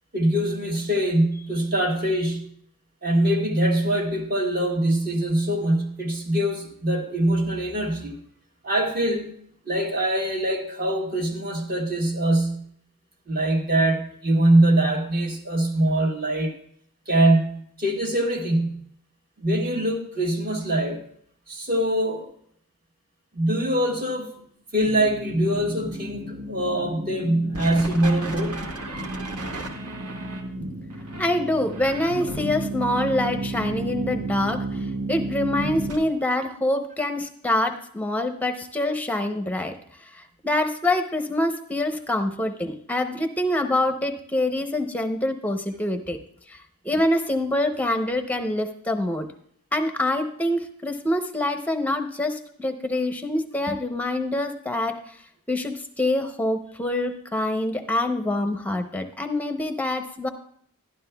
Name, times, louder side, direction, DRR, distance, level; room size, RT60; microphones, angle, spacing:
voice 1, 0.1-2.5 3.0-8.2 8.6-9.3 9.7-12.7 13.3-16.5 17.1-18.8 19.4-21.0 21.5-22.3 23.3-24.4 24.7-28.7, right 1 dB, 40° right, 1 dB, 1.4 m, -23 dB
sound 1, 24.8-36.0, right 2 dB, 90° right, 1.4 m, -32 dB
voice 2, 31.2-39.8 40.0-46.2 46.5-46.6 46.8-49.3 49.7-55.2 55.5-60.3, left 1 dB, 5° left, 7 dB, 0.6 m, -25 dB
12.0 x 11.5 x 2.2 m, 0.65 s
head